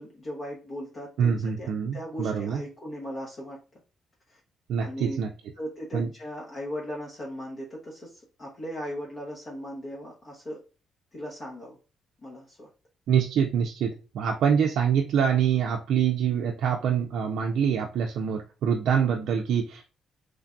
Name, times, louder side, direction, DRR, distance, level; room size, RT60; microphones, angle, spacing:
voice 1, 0.0-3.6 4.3-4.4 4.8-5.2 5.6-10.6 11.1-11.8 12.2-12.7, equal, 45° left, -3 dB, 0.9 m, -38 dB
voice 2, 1.2-2.6 4.7-5.3 5.9-6.1 13.1-19.8, right 7 dB, 80° right, 2 dB, 0.3 m, -25 dB
3.2 x 2.2 x 2.4 m, 0.33 s
cardioid pair, 90°, 0 cm